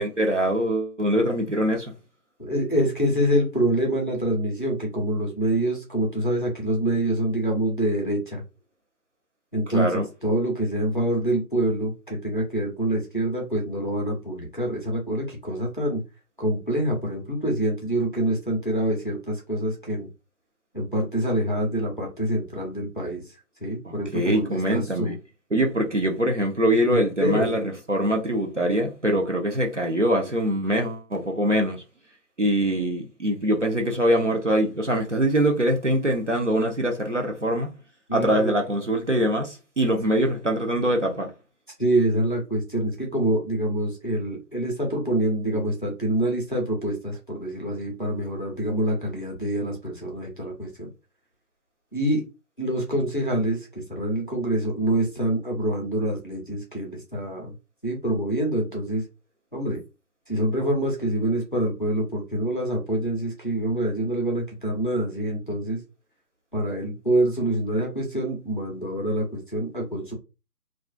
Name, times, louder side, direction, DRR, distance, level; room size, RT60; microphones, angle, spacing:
voice 1, 0.0-1.9 9.7-10.0 23.8-25.2 25.5-31.8 32.4-37.7 38.1-41.3, right 1 dB, 50° right, 0.5 m, -23 dB
voice 2, 2.4-8.4 9.5-16.0 16.4-20.1 20.7-23.2 23.6-25.1 27.2-27.5 38.1-38.5 41.8-50.9 51.9-52.2 52.6-57.5 57.8-59.0 59.5-59.8 60.3-65.8 66.5-70.1, right 1 dB, 30° left, 0.6 m, -26 dB
2.4 x 2.3 x 2.2 m
figure-of-eight pair, 170°, 49 cm